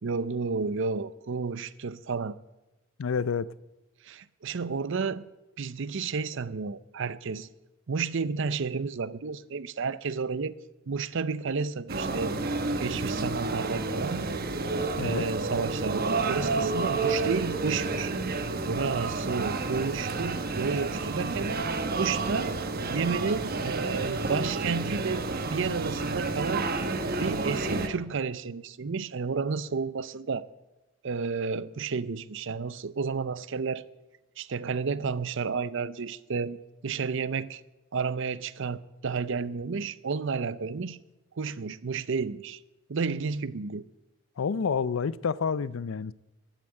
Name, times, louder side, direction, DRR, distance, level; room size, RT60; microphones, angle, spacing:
voice 1, 0.0-2.3 4.0-5.2 5.6-7.5 7.9-10.6 10.9-12.3 12.8-14.2 15.0-18.1 18.7-21.6 21.9-22.6 22.9-26.7 27.2-30.5 31.0-33.8 34.4-36.6 36.8-37.6 37.9-41.0 41.4-42.6 42.9-43.8, right 5 dB, 65° right, 0.6 m, -31 dB
voice 2, 3.0-3.5 15.0-15.2 44.4-46.1, left 6 dB, 75° left, 0.5 m, -28 dB
sound 1, 11.9-27.9, right 3 dB, 50° right, 1.1 m, -30 dB
14.0 x 9.0 x 7.8 m
head